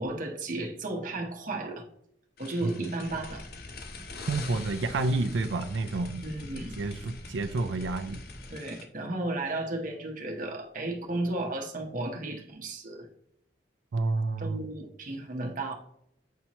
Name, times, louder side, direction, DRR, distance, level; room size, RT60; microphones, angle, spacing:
voice 1, 0.0-1.8 2.4-3.4 6.2-6.7 8.5-13.1 14.4-15.7, right 2 dB, 45° right, 0.9 m, -34 dB
sound 1, 2.4-8.8, left 5 dB, 55° left, 0.8 m, -46 dB
sound 2, 3.0-8.5, equal, 5° right, 2.0 m, -45 dB
voice 2, 4.3-6.2 6.8-8.2 13.9-14.6, right 3 dB, 90° right, 0.5 m, -29 dB
8.3 x 4.4 x 2.9 m
head